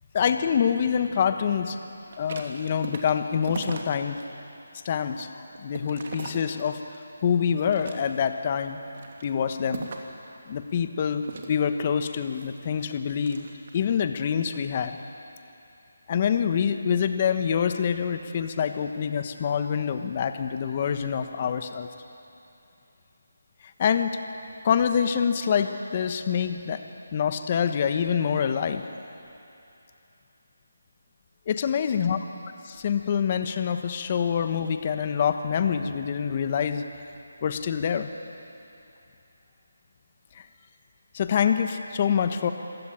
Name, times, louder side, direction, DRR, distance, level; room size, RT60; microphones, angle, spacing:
voice 1, 0.1-1.8 2.2-4.2 4.8-5.3 5.6-6.8 7.2-8.8 9.2-9.9 10.5-13.5 13.7-15.0 16.1-21.9 23.8-24.2 24.6-26.8 27.1-28.8 31.5-32.2 32.6-36.8 37.4-38.1 40.3-40.4 41.1-42.5, left 7 dB, 30° left, 8 dB, 1.2 m, -26 dB
sound 1, 2.0-4.2 4.7-7.0 7.5-8.4 8.9-10.2 11.2-13.9 14.4-14.7, right 4 dB, 45° right, 2.7 m, -40 dB
26.5 x 16.5 x 8.9 m, 2.8 s
figure-of-eight pair, 165°, 0 cm